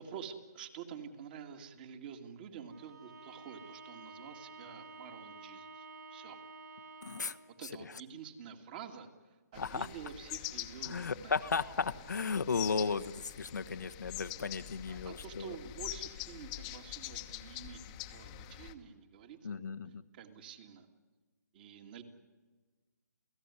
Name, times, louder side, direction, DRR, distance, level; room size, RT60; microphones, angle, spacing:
voice 1, 0.0-6.4 7.5-11.3 14.9-19.6 20.1-20.9 21.5-22.0, right 7 dB, 30° right, 6 dB, 2.3 m, -48 dB
Bowed string instrument, 2.7-7.5, right 3 dB, 80° right, 8.0 m, -51 dB
voice 2, 7.0-7.4 9.6-9.9 10.8-15.6 19.4-20.0, left 5 dB, 75° left, 9 dB, 1.2 m, -35 dB
sound 1, 9.5-18.7, left 15 dB, 20° left, 1.2 m, -45 dB
29.0 x 17.0 x 9.8 m, 1.3 s
hypercardioid pair, 155°, 10 cm